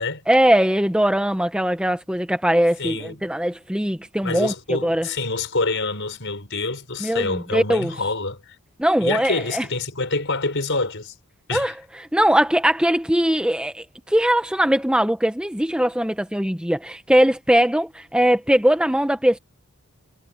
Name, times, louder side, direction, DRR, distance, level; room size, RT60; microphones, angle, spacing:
voice 1, 0.3-5.1 7.0-7.9 8.8-9.6 11.5-19.4, right 1 dB, 5° right, 0.9 m, -20 dB
voice 2, 2.8-3.3 4.2-8.6 9.0-11.1 11.5-11.7, left 3 dB, 55° left, 5.5 m, -26 dB
head